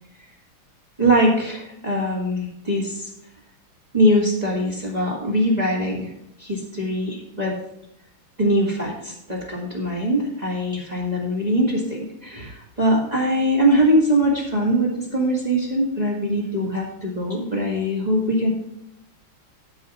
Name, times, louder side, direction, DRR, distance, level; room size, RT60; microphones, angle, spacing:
voice 1, 1.0-3.1 3.9-6.1 6.4-7.6 8.4-18.5, equal, 20° right, -3 dB, 2.0 m, -22 dB
12.5 x 4.8 x 5.6 m, 0.77 s
omnidirectional pair, 2.2 m